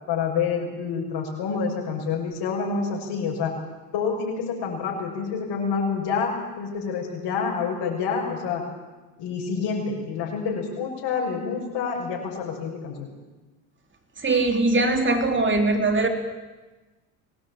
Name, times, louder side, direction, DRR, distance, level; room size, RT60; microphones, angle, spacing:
voice 1, 0.1-3.5 3.9-6.3 6.6-8.6 9.2-13.1, left 5 dB, 60° left, -3 dB, 6.7 m, -27 dB
voice 2, 14.2-16.1, right 2 dB, 25° right, 6 dB, 3.7 m, -21 dB
23.0 x 18.5 x 8.9 m, 1.2 s
supercardioid pair, 90°, 46 cm